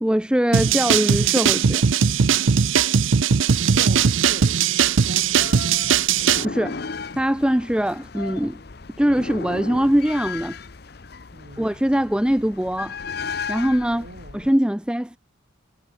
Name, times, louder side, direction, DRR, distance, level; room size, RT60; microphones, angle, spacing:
voice 1, 0.0-1.8 6.4-6.8 7.1-8.6 9.0-10.6 11.6-13.0 13.5-14.1 14.3-15.2, equal, 5° right, 0.5 m, -22 dB
sound 1, 0.5-6.5, right 7 dB, 75° right, 0.6 m, -19 dB
voice 2, 3.7-5.9 11.3-11.7 13.9-14.4, right 1 dB, 55° right, 7.4 m, -39 dB
sound 2, 5.2-14.5, left 5 dB, 50° left, 0.8 m, -35 dB
head